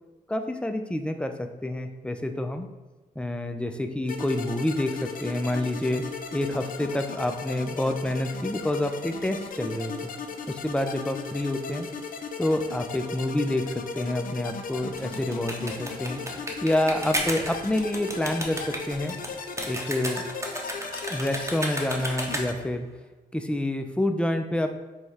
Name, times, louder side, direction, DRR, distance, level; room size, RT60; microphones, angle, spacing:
voice 1, 0.3-2.7 3.2-6.0 6.3-9.9 10.5-11.9 12.4-19.2 19.6-20.2 21.1-22.9 23.3-24.7, left 1 dB, 5° left, 6 dB, 0.4 m, -28 dB
sound 1, 4.1-22.5, left 5 dB, 60° left, 0.5 m, -37 dB
sound 2, 14.8-22.7, right 1 dB, 20° right, 0.9 m, -33 dB
4.8 x 2.3 x 4.1 m, 1.2 s
cardioid pair, 60°, 16 cm